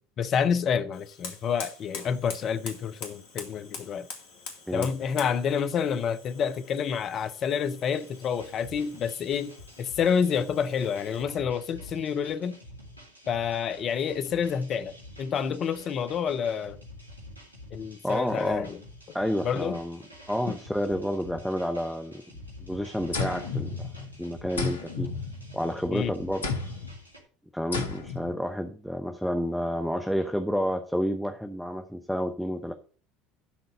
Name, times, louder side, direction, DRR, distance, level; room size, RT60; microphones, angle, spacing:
voice 1, 0.2-4.1 4.7-9.5 9.8-12.6 13.3-14.9 15.2-16.8 17.7-18.8 19.1-19.2 19.4-19.8 20.5-20.6 25.9-26.1, left 7 dB, 40° left, 0.8 m, -28 dB
Fire, 0.9-11.5, left 4 dB, 60° left, 2.1 m, -45 dB
sound 1, 7.9-27.2, left 1 dB, 85° right, 3.3 m, -49 dB
voice 2, 18.0-18.7 19.1-20.0 20.3-22.2 22.6-23.7 24.2-25.1 25.5-26.5 27.5-32.7, equal, ahead, 0.9 m, -30 dB
sound 2, 23.1-24.2 24.6-25.8 26.4-27.0 27.7-28.3, left 4 dB, 80° left, 1.0 m, -32 dB
11.5 x 3.9 x 6.8 m
figure-of-eight pair, 65°, 0 cm